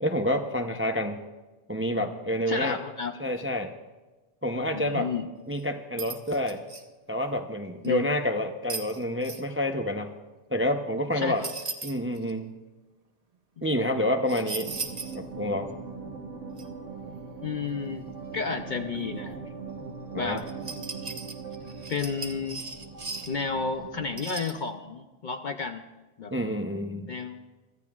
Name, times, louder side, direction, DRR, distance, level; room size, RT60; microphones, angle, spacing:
voice 1, 0.0-1.2 1.7-2.8 3.2-3.7 4.4-5.1 5.5-6.6 7.1-10.1 10.5-11.4 11.8-12.5 13.6-14.7 15.1-15.7 20.1-20.4 26.3-27.2, left 1 dB, 15° right, 5 dB, 0.5 m, -28 dB
voice 2, 2.5-3.1 4.7-5.3 7.8-8.1 11.1-11.5 13.6-13.7 17.4-19.4 20.1-20.4 21.9-22.6 23.3-25.8 26.2-26.3 27.1-27.4, left 5 dB, 50° left, 6 dB, 0.7 m, -32 dB
sound 1, 5.5-5.6 6.0-6.8 7.8-7.9 8.7-9.4 11.4-12.3 14.3-15.2 15.5-15.6 16.6-16.7 20.4-23.5 24.2-24.6, right 4 dB, 35° right, 0.9 m, -37 dB
sound 2, 14.6-24.2, right 5 dB, 75° right, 1.6 m, -40 dB
24.0 x 14.0 x 2.4 m, 1.2 s
omnidirectional pair, 1.2 m